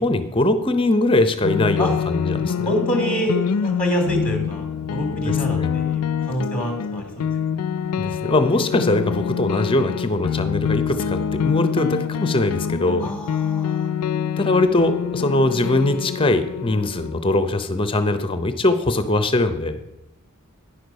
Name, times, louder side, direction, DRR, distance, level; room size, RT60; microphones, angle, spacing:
voice 1, 0.0-2.7 5.1-5.7 8.0-13.1 14.1-19.8, left 2 dB, 25° left, 10 dB, 0.7 m, -21 dB
sound 1, 1.4-17.6, left 7 dB, 75° left, 0.4 m, -26 dB
voice 2, 2.3-7.3 13.0-13.9, equal, 5° left, 3 dB, 1.6 m, -27 dB
10.0 x 6.5 x 5.2 m, 0.90 s
head